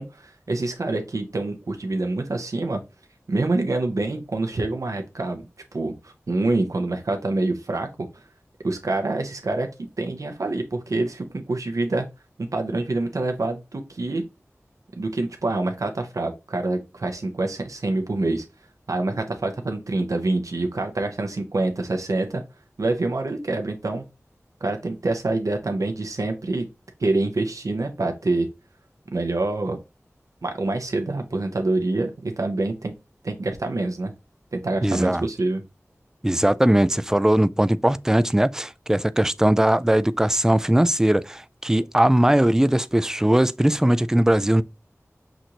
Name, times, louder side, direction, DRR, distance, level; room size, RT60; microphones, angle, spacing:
voice 1, 0.0-2.8 3.3-5.4 5.7-7.9 8.6-9.7 10.0-12.1 12.5-14.2 15.0-18.4 18.9-22.4 22.8-24.0 24.6-26.7 27.0-28.5 29.1-29.8 30.4-32.9 33.2-34.1 34.5-35.6, right 2 dB, 85° right, 0.7 m, -26 dB
voice 2, 34.8-35.3 36.2-44.6, right 1 dB, 10° right, 0.3 m, -20 dB
6.0 x 2.6 x 2.9 m
wide cardioid pair, 45°, 5 cm